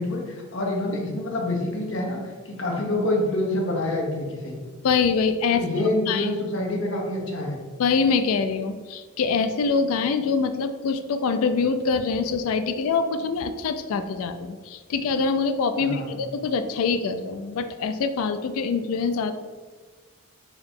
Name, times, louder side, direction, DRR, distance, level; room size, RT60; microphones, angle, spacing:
voice 1, 0.0-2.2 2.4-4.6 5.5-7.6 15.8-16.1, left 1 dB, 60° left, -1 dB, 0.9 m, -26 dB
voice 2, 4.8-5.6 6.1-6.3 7.8-19.4, left 5 dB, 75° left, 10 dB, 0.3 m, -24 dB
4.6 x 2.8 x 3.6 m, 1.4 s
head